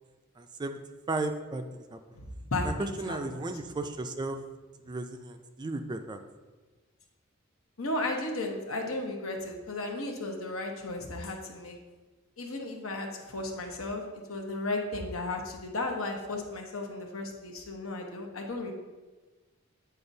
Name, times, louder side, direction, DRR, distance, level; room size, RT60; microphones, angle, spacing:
voice 1, 0.4-0.8 1.1-2.0 2.6-4.4 4.8-6.2, right 2 dB, 20° right, 7 dB, 0.3 m, -35 dB
voice 2, 2.5-3.5 7.8-11.8 12.4-18.7, left 2 dB, 85° left, 2 dB, 0.9 m, -34 dB
8.6 x 4.2 x 2.7 m, 1.3 s
head